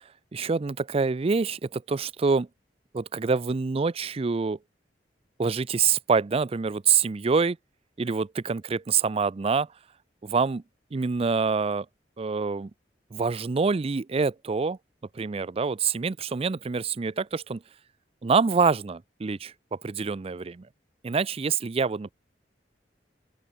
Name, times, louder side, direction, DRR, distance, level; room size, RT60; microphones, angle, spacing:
voice 1, 0.3-2.5 2.9-4.6 5.4-7.6 8.0-9.7 10.2-10.6 10.9-11.9 12.2-12.7 13.1-14.8 15.1-17.6 18.2-20.7 21.0-22.1, right 5 dB, 35° right, 0.4 m, -26 dB
open air
head